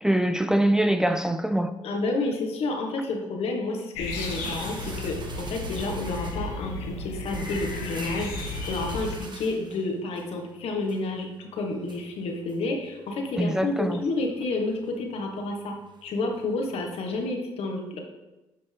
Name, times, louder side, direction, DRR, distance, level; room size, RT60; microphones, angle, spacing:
voice 1, 0.0-1.7 13.4-14.0, right 1 dB, 5° right, 0.5 m, -23 dB
voice 2, 1.8-15.8 16.0-18.0, left 2 dB, 65° left, 1.7 m, -30 dB
sound 1, 3.9-9.2, left 2 dB, 85° left, 1.3 m, -34 dB
sound 2, 4.0-17.3, right 4 dB, 45° right, 1.3 m, -47 dB
10.5 x 5.3 x 3.5 m
supercardioid pair, 65°, 11 cm